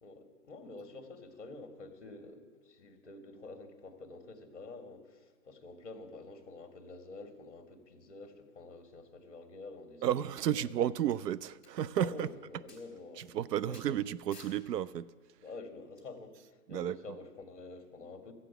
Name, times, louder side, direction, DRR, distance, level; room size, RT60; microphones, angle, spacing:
voice 1, 0.0-10.0 10.5-10.7 11.9-13.4 13.6-13.8 15.4-18.3, left 3 dB, 45° left, 1.4 m, -48 dB
voice 2, 10.0-12.3 13.2-15.1 16.7-17.2, right 10 dB, 80° right, 0.5 m, -32 dB
sound 1, 11.1-11.2 11.6-11.7 12.2-12.3 12.7-12.8 13.2-13.3 13.7-13.9 14.3-14.6 16.0-16.1, left 3 dB, 10° right, 2.0 m, -54 dB
13.5 x 8.2 x 6.8 m
hypercardioid pair, 165°, 48 cm